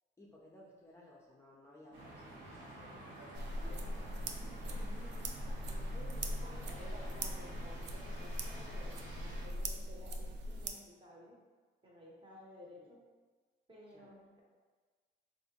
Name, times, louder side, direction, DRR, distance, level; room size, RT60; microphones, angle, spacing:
voice 1, 0.2-3.3 4.6-5.3 12.7-13.0 13.9-14.2, left 1 dB, 15° left, -5 dB, 0.4 m, -58 dB
sound 1, 1.9-9.5, right 1 dB, 75° right, 1.1 m, -50 dB
voice 2, 2.4-4.2 5.4-11.4 11.8-13.0 13.7-14.4, left 1 dB, 25° right, -3 dB, 0.8 m, -55 dB
sound 2, 3.4-10.7, right 1 dB, 60° right, 0.4 m, -40 dB
3.3 x 2.6 x 2.8 m, 1.4 s
cardioid pair, 90°, 20 cm